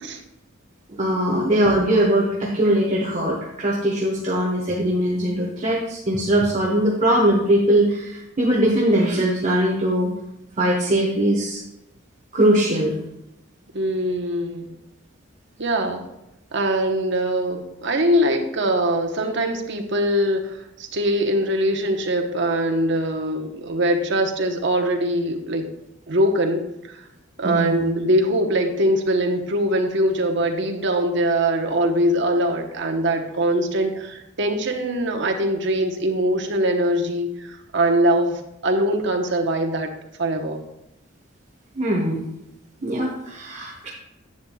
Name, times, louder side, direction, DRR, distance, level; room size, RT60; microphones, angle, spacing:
voice 1, 1.0-10.1 10.6-11.6 12.3-13.0 27.4-27.9 41.7-42.2 42.8-43.9, right 1 dB, 40° right, -3 dB, 1.2 m, -21 dB
voice 2, 13.7-14.8 15.6-16.0 16.5-25.7 26.1-27.0 27.4-39.9 40.2-40.6, right 1 dB, 65° right, 4 dB, 1.0 m, -22 dB
10.5 x 9.0 x 2.3 m, 0.88 s
head